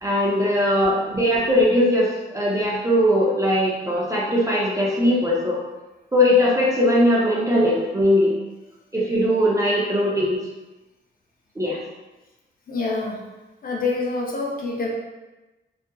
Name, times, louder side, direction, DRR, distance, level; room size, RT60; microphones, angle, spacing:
voice 1, 0.0-5.6 6.1-8.3 8.9-10.4 11.6-11.8, left 1 dB, 15° right, -5 dB, 0.4 m, -20 dB
voice 2, 12.7-13.2 13.6-14.9, left 3 dB, 45° left, -2 dB, 0.4 m, -26 dB
2.7 x 2.3 x 2.2 m, 1.1 s
wide cardioid pair, 155°, 20 cm